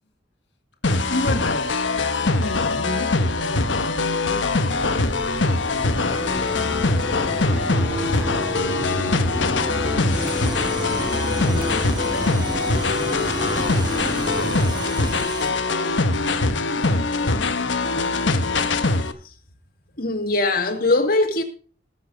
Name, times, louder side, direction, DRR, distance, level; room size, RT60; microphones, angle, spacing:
sound 1, 0.8-19.1, left 3 dB, 85° left, 1.2 m, -22 dB
voice 1, 0.8-1.8 2.2-7.5 8.0-9.1 9.4-9.7 10.1-11.0 11.4-13.6 14.0-15.7 16.2-18.7, left 1 dB, 70° left, 2.2 m, -35 dB
Mechanisms, 4.3-15.3, equal, 10° right, 1.7 m, -31 dB
sound 2, 10.1-15.5, right 5 dB, 25° right, 1.4 m, -39 dB
voice 2, 20.0-21.4, left 2 dB, 55° left, 2.1 m, -21 dB
20.5 x 7.5 x 3.9 m
head